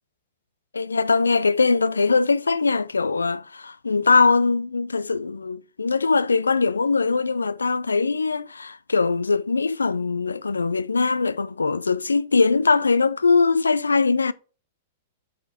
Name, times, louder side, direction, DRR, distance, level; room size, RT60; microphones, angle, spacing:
voice 1, 0.7-14.3, left 4 dB, 85° left, 0.3 m, -21 dB
5.5 x 4.8 x 3.5 m
figure-of-eight pair, 105°, 0 cm